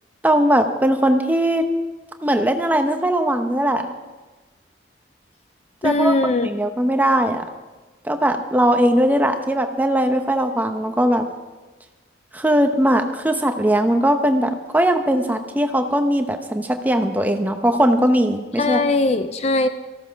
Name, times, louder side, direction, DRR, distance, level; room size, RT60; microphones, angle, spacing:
voice 1, 0.2-1.7 2.2-3.9 5.8-6.1 6.4-7.4 8.0-11.3 12.3-18.8, right 1 dB, 10° right, 6 dB, 0.8 m, -19 dB
voice 2, 5.8-6.5 18.6-19.7, left 2 dB, 35° left, 10 dB, 0.5 m, -20 dB
14.5 x 13.0 x 5.2 m, 1.2 s
head